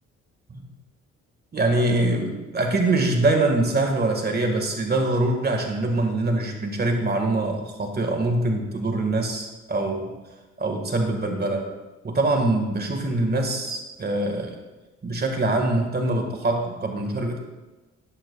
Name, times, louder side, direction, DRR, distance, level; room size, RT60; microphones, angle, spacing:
voice 1, 1.5-10.2 10.6-11.7 12.0-14.6 15.0-17.4, right 2 dB, 35° right, 3 dB, 1.7 m, -24 dB
11.5 x 11.0 x 2.4 m, 1.1 s
cardioid pair, 90°, 30 cm